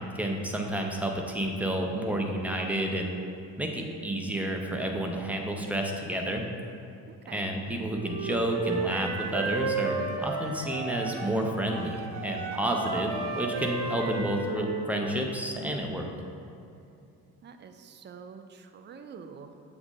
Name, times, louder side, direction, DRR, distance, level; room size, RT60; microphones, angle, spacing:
voice 1, 0.0-3.1 3.6-6.4 7.3-16.1, right 1 dB, 5° right, 1 dB, 0.8 m, -30 dB
voice 2, 7.1-7.5 17.4-19.7, right 6 dB, 25° right, 7 dB, 0.4 m, -46 dB
Wind instrument woodwind instrument, 7.9-11.4 11.7-15.2, right 4 dB, 55° right, 1.1 m, -33 dB
7.1 x 3.5 x 5.2 m, 2.7 s
figure-of-eight pair, 45°, 50 cm